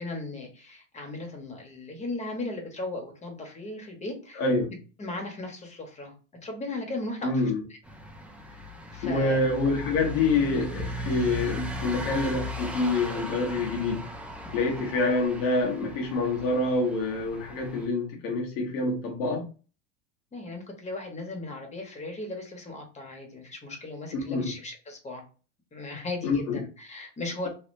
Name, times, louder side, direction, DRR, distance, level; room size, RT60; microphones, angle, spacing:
voice 1, 0.0-4.4 5.0-6.1 6.4-7.8 8.9-9.4 20.3-25.2 25.7-27.5, left 2 dB, 20° left, 1.1 m, -37 dB
voice 2, 4.3-4.7 7.2-7.6 9.0-14.1 14.5-19.5 24.1-24.5 26.2-26.6, left 3 dB, 85° left, 1.3 m, -26 dB
sound 1, 7.8-17.9, left 1 dB, 5° right, 0.5 m, -37 dB
3.2 x 2.7 x 2.6 m
supercardioid pair, 130°, 37 cm